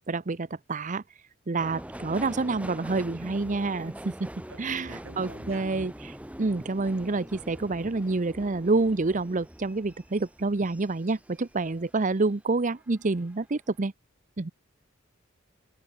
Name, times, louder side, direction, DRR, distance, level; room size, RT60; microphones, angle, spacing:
voice 1, 0.1-1.0 1.5-4.1 4.6-13.9 14.4-14.5, right 3 dB, 40° right, 0.7 m, -28 dB
Subway metro underground, 1.6-12.3 12.7-13.4 13.7-13.8, equal, 5° right, 1.7 m, -43 dB
voice 2, 4.5-5.7, right 2 dB, 80° right, 4.6 m, -47 dB
open air
head